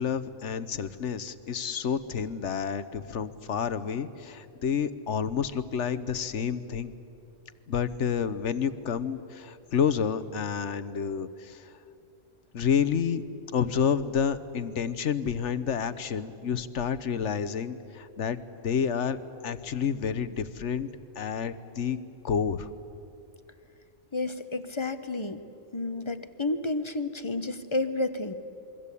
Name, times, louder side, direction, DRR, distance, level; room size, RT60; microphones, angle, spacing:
voice 1, 0.0-6.9 7.7-11.7 12.5-13.2 13.5-18.4 18.6-19.2 19.4-20.9 21.2-22.0 22.2-22.7, left 7 dB, 70° left, 13 dB, 1.3 m, -29 dB
voice 2, 24.1-25.4 25.7-28.3, left 2 dB, 25° left, 10 dB, 1.1 m, -31 dB
28.0 x 23.0 x 8.4 m, 2.7 s
omnidirectional pair, 1.3 m